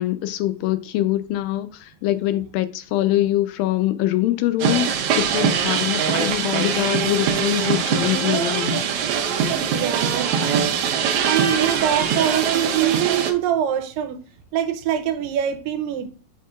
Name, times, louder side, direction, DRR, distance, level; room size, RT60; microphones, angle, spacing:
voice 1, 0.0-8.8, left 14 dB, 85° left, 2.3 m, -23 dB
sound 1, 4.6-13.3, right 7 dB, 75° right, 1.7 m, -22 dB
voice 2, 9.7-10.3 11.3-14.2 14.5-16.1, right 10 dB, 90° right, 2.3 m, -23 dB
7.2 x 5.5 x 2.4 m
omnidirectional pair, 4.0 m